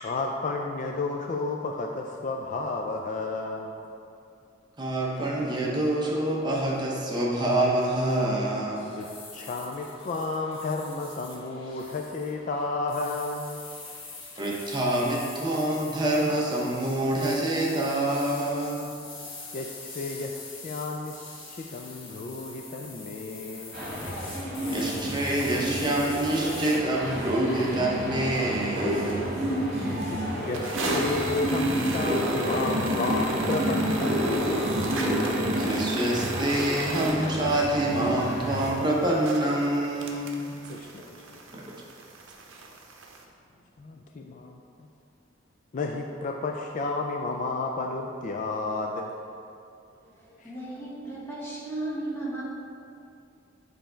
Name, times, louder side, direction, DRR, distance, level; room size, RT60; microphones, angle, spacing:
voice 1, 0.0-3.8 9.0-9.1 9.3-13.6 19.5-21.2 21.5-23.8 30.0-34.8 40.7-41.0 43.8-44.6 45.7-49.1 50.4-50.5, left 3 dB, 40° left, 2 dB, 0.3 m, -32 dB
voice 2, 4.8-8.9 14.4-18.9 24.7-29.3 35.6-40.5 41.5-41.8, right 1 dB, 25° right, -3 dB, 0.7 m, -26 dB
sound 1, 8.8-26.8, left 3 dB, 75° left, 1.2 m, -44 dB
sound 2, 23.7-38.7, equal, 40° right, 1.5 m, -29 dB
sound 3, 26.0-26.1 26.3-26.4 26.9-27.3 27.8-27.9 28.2-28.8 29.1-29.2 29.5-29.6 29.8-30.0 30.5-43.2, right 3 dB, 75° right, 0.7 m, -38 dB
voice 3, 50.0-52.4, right 2 dB, 10° left, -7 dB, 1.2 m, -35 dB
7.2 x 3.3 x 4.4 m, 2.5 s
head